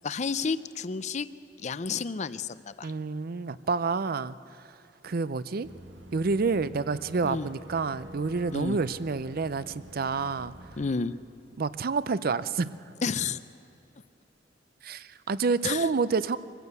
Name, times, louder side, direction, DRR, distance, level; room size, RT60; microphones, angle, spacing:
voice 1, 0.0-1.3 1.6-2.9 7.2-7.5 8.5-8.8 10.8-11.1 13.0-13.4 15.6-15.9, left 5 dB, 40° left, 14 dB, 0.5 m, -31 dB
voice 2, 2.8-4.4 5.0-5.7 6.1-10.5 11.6-12.7 14.8-16.4, right 4 dB, 55° right, 16 dB, 0.5 m, -28 dB
Boat Water vehicle / Engine, 5.6-10.9, right 1 dB, 85° right, 1.8 m, -47 dB
24.5 x 15.0 x 8.2 m, 2.9 s
head